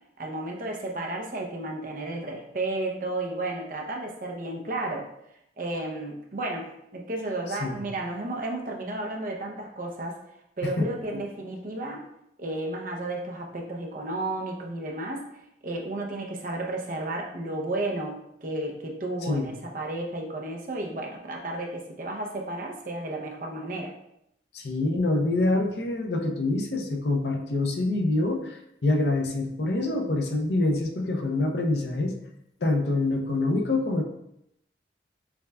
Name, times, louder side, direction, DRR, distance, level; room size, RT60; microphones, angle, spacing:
voice 1, 0.2-5.1 5.6-10.2 10.6-12.0 12.4-15.3 15.6-23.9, right 2 dB, 50° right, 1 dB, 0.6 m, -33 dB
voice 2, 24.5-32.1 32.6-34.0, left 2 dB, 65° left, 3 dB, 0.6 m, -26 dB
6.8 x 2.3 x 2.2 m, 0.79 s
head